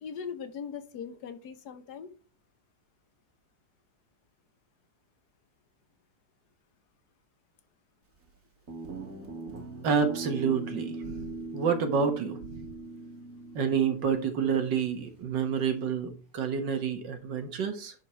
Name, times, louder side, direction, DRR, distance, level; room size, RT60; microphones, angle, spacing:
voice 1, 0.0-2.1, left 7 dB, 65° left, 1.4 m, -40 dB
Guitar, 8.7-15.2, right 3 dB, 50° right, 2.1 m, -41 dB
voice 2, 9.8-12.7 13.6-17.9, right 6 dB, 80° right, 2.0 m, -29 dB
10.5 x 4.8 x 4.4 m
omnidirectional pair, 1.9 m